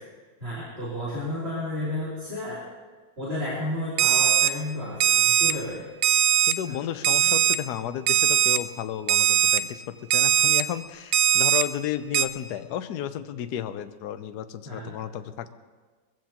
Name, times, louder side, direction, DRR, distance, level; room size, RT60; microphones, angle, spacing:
voice 1, 0.4-2.6 3.2-5.9 6.6-6.8 7.2-7.4 14.6-14.9, left 1 dB, 35° right, -7 dB, 3.4 m, -32 dB
Alarm, 4.0-4.5 5.0-5.5 6.0-6.5 7.0-7.6 8.1-8.6 9.1-9.6 10.1-10.6 11.1-11.6 12.1-12.3, right 11 dB, 80° right, 1.3 m, -20 dB
voice 2, 6.5-9.8 10.1-15.5, left 10 dB, 70° left, 10 dB, 1.1 m, -32 dB
22.0 x 15.0 x 2.9 m, 1.4 s
omnidirectional pair, 2.0 m